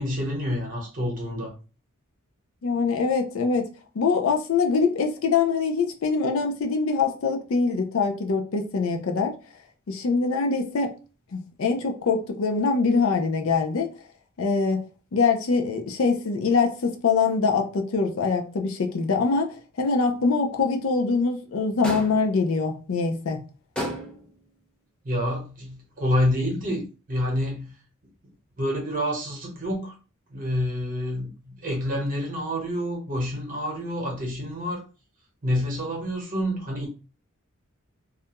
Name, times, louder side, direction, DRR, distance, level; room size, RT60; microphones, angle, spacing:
voice 1, 0.0-1.5 25.0-27.7 28.6-29.9 30.3-34.9 35.4-36.9, equal, 40° right, 0.9 m, -28 dB
voice 2, 2.6-3.6 3.9-9.4 9.9-10.9 11.3-13.9 14.4-14.8 15.1-23.4, left 4 dB, 75° left, 0.5 m, -24 dB
sound 1, 21.8-22.4 23.8-24.4, equal, 5° left, 0.5 m, -32 dB
2.4 x 2.2 x 2.8 m
head